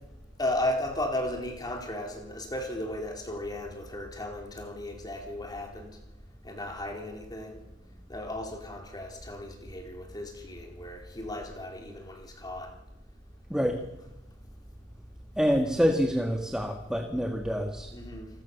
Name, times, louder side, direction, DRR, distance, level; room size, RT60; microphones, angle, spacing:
voice 1, 0.4-5.9 6.4-7.6 8.1-12.7 17.9-18.3, left 1 dB, 20° left, 4.2 m, -35 dB
voice 2, 15.4-17.9, equal, 5° right, 1.7 m, -26 dB
29.0 x 20.0 x 7.1 m
head